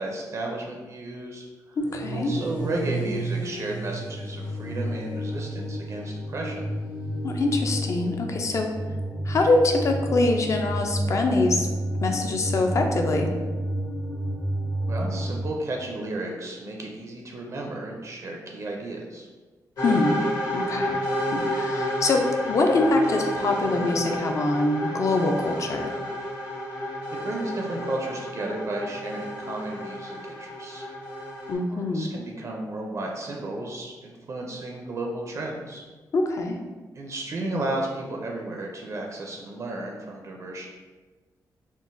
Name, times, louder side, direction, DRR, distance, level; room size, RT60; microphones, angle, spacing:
voice 1, 0.0-1.8 2.1-6.7 14.9-19.3 27.2-30.8 31.7-35.8 36.9-40.7, right 2 dB, 45° right, 0 dB, 0.4 m, -33 dB
sound 1, 1.8-15.4, right 1 dB, 85° left, 1.4 m, -30 dB
voice 2, 1.8-2.3 7.2-8.7 9.3-11.7 12.0-13.3 19.8-20.2 20.5-20.9 21.3-25.9 31.5-32.1 36.1-36.6, left 2 dB, 45° left, 3 dB, 0.4 m, -24 dB
sound 2, 19.8-31.5, equal, 65° left, 1.2 m, -30 dB
3.7 x 2.1 x 2.5 m, 1.3 s
cardioid pair, 110°, 7 cm